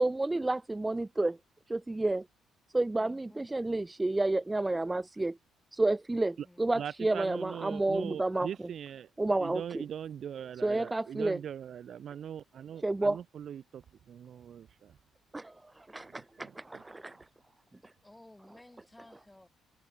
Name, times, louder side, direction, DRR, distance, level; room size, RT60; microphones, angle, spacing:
voice 1, 0.0-1.4 1.7-2.2 2.7-5.4 5.7-8.7 9.2-9.8 10.6-11.4 12.8-13.2 15.3-17.2, right 2 dB, 15° right, 0.6 m, -30 dB
voice 2, 3.0-3.5 6.4-6.7 18.0-19.5, left 1 dB, 10° left, 5.2 m, -56 dB
voice 3, 6.8-9.1 9.4-13.8 14.1-14.9 16.4-16.8, right 9 dB, 55° right, 0.4 m, -41 dB
cardioid pair, 130°, 0 cm